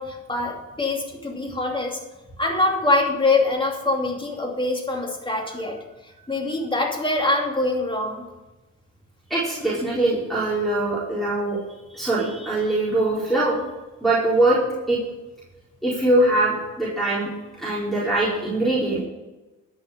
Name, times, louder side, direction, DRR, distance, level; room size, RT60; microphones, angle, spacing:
voice 1, 0.0-2.0 2.4-5.8 6.3-8.2, left 2 dB, 15° left, 1 dB, 2.7 m, -24 dB
voice 2, 9.3-11.6 11.9-13.6 14.0-14.6 14.9-15.0 15.8-17.3 17.6-19.0, right 2 dB, ahead, -10 dB, 4.4 m, -22 dB
13.0 x 5.8 x 7.4 m, 1.1 s
cardioid pair, 90°, 30 cm